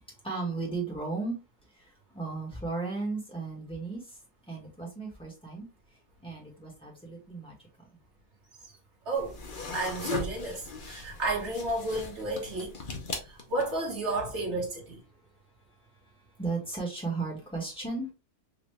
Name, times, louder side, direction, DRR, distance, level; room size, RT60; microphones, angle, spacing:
voice 1, 0.2-1.4 1.8-4.2 4.5-5.7 6.2-8.0 16.4-18.1, right 3 dB, 5° left, 1.3 m, -35 dB
sound 1, 9.2-13.9, left 3 dB, 45° left, 0.8 m, -38 dB
voice 2, 9.7-12.8 13.3-15.0, right 2 dB, 50° right, 1.6 m, -32 dB
4.0 x 2.5 x 3.2 m
omnidirectional pair, 1.6 m